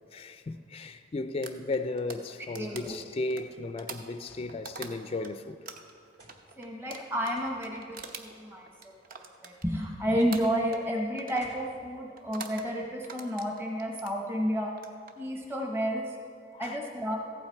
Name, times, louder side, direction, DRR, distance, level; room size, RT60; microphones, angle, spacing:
voice 1, 0.1-5.6 16.5-16.8, left 2 dB, 35° left, 0.3 m, -35 dB
sound 1, 1.4-5.3 5.7-9.9 10.3-10.9 11.2-11.5 12.2-12.7 13.0-14.2 14.7-15.1, right 4 dB, 55° right, 0.8 m, -44 dB
voice 2, 2.5-2.9 6.6-14.7 15.2-16.2 16.6-17.2, equal, 15° right, 0.9 m, -31 dB
sound 2, 4.3-4.5 5.4-5.5 6.2-6.4 7.4-7.6 8.6-9.0 10.2-10.5 11.4-11.7, right 1 dB, 70° right, 2.5 m, -56 dB
15.0 x 8.8 x 4.5 m
head